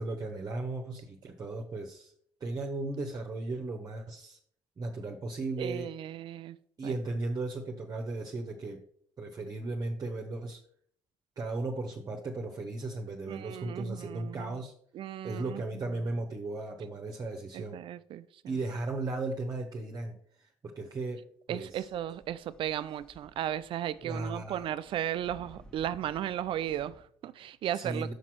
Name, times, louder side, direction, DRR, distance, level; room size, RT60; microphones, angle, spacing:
voice 1, 0.0-2.1 2.4-4.4 4.8-5.9 6.8-8.8 9.2-10.6 11.4-14.7 15.2-17.8 18.5-21.9 24.0-24.6 27.7-28.1, right 2 dB, 40° right, 1.1 m, -36 dB
voice 2, 5.6-6.6 6.8-6.9 13.3-14.6 14.9-15.6 17.5-18.5 21.5-28.1, right 11 dB, 60° right, 0.5 m, -35 dB
sound 1, 21.5-27.0, equal, 10° left, 1.3 m, -57 dB
6.0 x 5.2 x 5.9 m
hypercardioid pair, 50°, 10 cm